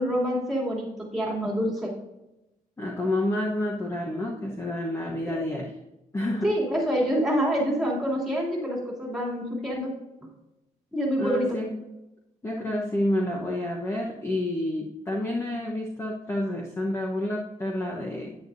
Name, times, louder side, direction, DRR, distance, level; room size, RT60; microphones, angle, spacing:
voice 1, 0.0-1.9 5.3-5.4 6.4-10.0 10.9-11.6, equal, ahead, -4 dB, 3.0 m, -26 dB
voice 2, 2.8-5.7 6.1-6.5 11.2-11.7 12.4-18.3, left 1 dB, 20° left, -2 dB, 1.1 m, -29 dB
10.0 x 9.5 x 2.7 m, 0.96 s
cardioid pair, 130°, 15 cm